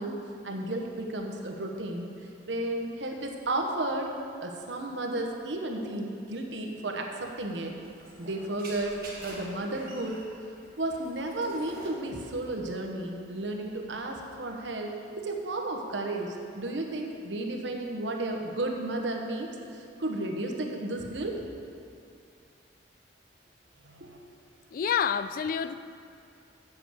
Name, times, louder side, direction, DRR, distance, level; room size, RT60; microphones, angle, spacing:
voice 1, 0.0-2.1 2.5-4.1 4.4-7.7 8.2-10.2 10.8-21.4 23.8-24.2, right 2 dB, 85° right, 2 dB, 1.2 m, -33 dB
sound 1, 7.2-14.1, right 2 dB, 55° right, 1.8 m, -48 dB
voice 2, 24.7-25.7, left 7 dB, 50° left, 13 dB, 0.3 m, -28 dB
7.8 x 6.5 x 7.8 m, 2.5 s
head